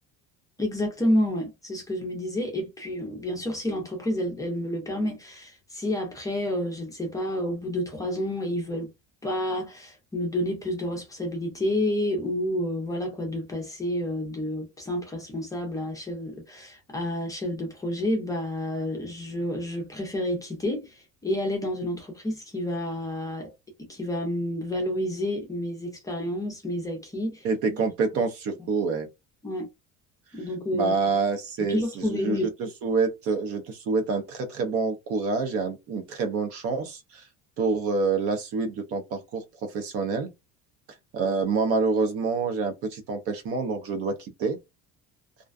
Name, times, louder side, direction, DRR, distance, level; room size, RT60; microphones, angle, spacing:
voice 1, 0.6-8.9 9.2-23.5 23.8-27.5 29.4-29.7 30.3-30.9 31.6-32.5, left 1 dB, 10° left, 0.5 m, -29 dB
voice 2, 27.4-29.1 30.7-37.2 37.6-40.3 41.1-44.6, right 4 dB, 45° right, 0.5 m, -27 dB
2.4 x 2.2 x 2.3 m
cardioid pair, 180°, 33 cm